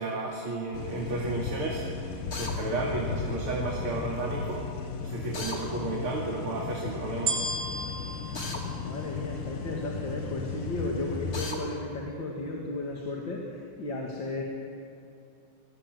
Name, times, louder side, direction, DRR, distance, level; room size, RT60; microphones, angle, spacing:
voice 1, 0.0-1.8 2.4-4.6 5.0-7.4, right 2 dB, 80° right, -3 dB, 3.6 m, -32 dB
sound 1, 0.7-11.5, left 5 dB, 80° left, 2.4 m, -36 dB
Drill, 2.3-2.6 5.3-5.6 8.3-8.6 11.3-11.6, left 3 dB, 45° left, 3.4 m, -35 dB
sound 2, 7.3-9.7 10.3-10.4, right 3 dB, 55° right, 4.0 m, -34 dB
voice 2, 8.6-14.4, left 2 dB, 60° left, -1 dB, 3.0 m, -34 dB
28.5 x 20.5 x 8.1 m, 2.6 s
omnidirectional pair, 2.4 m